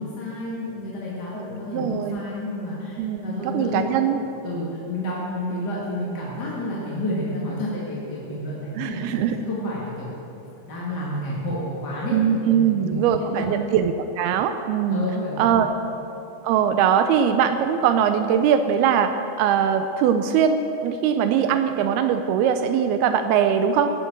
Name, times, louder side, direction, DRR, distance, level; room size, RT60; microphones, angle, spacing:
voice 1, 0.0-3.8 4.1-12.2 12.5-13.6 14.9-15.9, left 1 dB, 35° left, -6 dB, 2.0 m, -30 dB
voice 2, 1.3-2.2 3.0-4.2 8.8-9.4 12.1-15.0 15.4-15.7 16.4-23.9, right 8 dB, 85° right, 8 dB, 2.6 m, -21 dB
17.0 x 8.4 x 7.2 m, 2.9 s
omnidirectional pair, 4.4 m